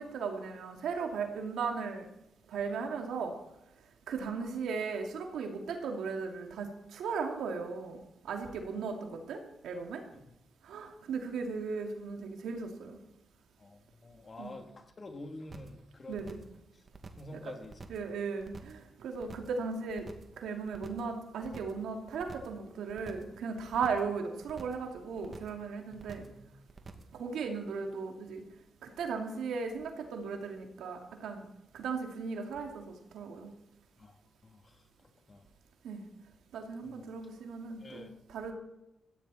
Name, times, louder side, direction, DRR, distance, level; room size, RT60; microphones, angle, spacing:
voice 1, 0.0-2.1 2.5-3.4 4.1-10.0 10.6-13.0 14.4-14.5 16.1-16.4 17.9-20.1 20.4-26.3 27.1-28.4 28.8-31.5 31.7-33.5 35.8-36.0 36.5-38.5, right 5 dB, 80° right, 3 dB, 2.5 m, -37 dB
voice 2, 13.6-16.3 17.2-17.9 25.9-26.5 34.0-34.1 34.4-34.8 35.3-35.5 36.8-37.0 37.8-38.1, left 2 dB, 45° left, 4 dB, 2.9 m, -48 dB
sound 1, 15.5-15.8 16.1-16.6 16.9-17.3 17.6-18.1 18.4-18.8 19.1-19.6 19.9-20.4 20.7-21.1 21.4-21.8 22.1-22.6 22.9-23.4 23.7-24.1 24.4-24.9 25.2-25.6 25.9-26.4 26.7-27.2, right 4 dB, 45° right, 2.3 m, -49 dB
17.0 x 15.0 x 4.3 m, 0.88 s
supercardioid pair, 55°, 0 cm